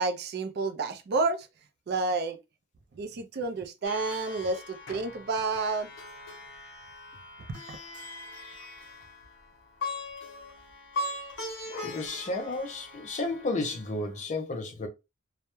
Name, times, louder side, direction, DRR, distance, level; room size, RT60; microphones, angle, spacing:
voice 1, 0.0-1.5 1.9-2.4 3.0-5.9 7.5-7.8, right 3 dB, 50° right, 0.4 m, -30 dB
Plucked string instrument, 3.8-14.2, left 2 dB, 60° left, 0.8 m, -41 dB
voice 2, 11.7-14.9, left 2 dB, 35° left, 0.4 m, -32 dB
2.2 x 2.0 x 2.9 m
head